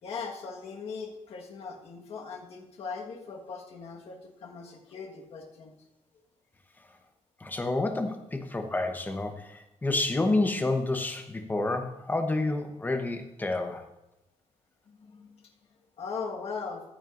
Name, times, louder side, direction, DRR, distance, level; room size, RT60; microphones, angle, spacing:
voice 1, 0.0-5.7 14.9-15.4 16.0-16.8, left 5 dB, 55° left, 1 dB, 1.5 m, -39 dB
voice 2, 7.4-13.8, left 2 dB, 15° left, 5 dB, 1.0 m, -29 dB
14.5 x 8.9 x 2.6 m, 0.95 s
cardioid pair, 150°, 12 cm